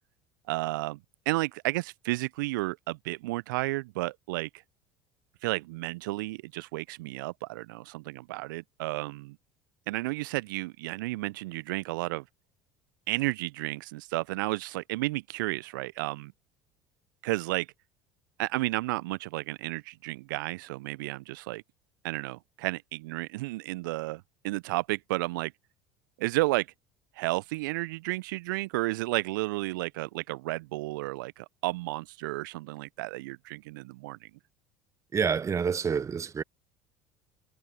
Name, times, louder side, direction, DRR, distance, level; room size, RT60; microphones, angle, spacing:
voice 1, 0.5-1.0 1.3-4.6 5.4-9.4 9.9-12.2 13.1-16.3 17.2-17.7 18.4-21.6 22.0-25.5 26.2-26.7 27.1-34.3, right 21 dB, 70° right, 0.4 m, -32 dB
voice 2, 35.1-36.4, right 6 dB, 25° right, 0.9 m, -28 dB
hypercardioid pair, 70°, 11 cm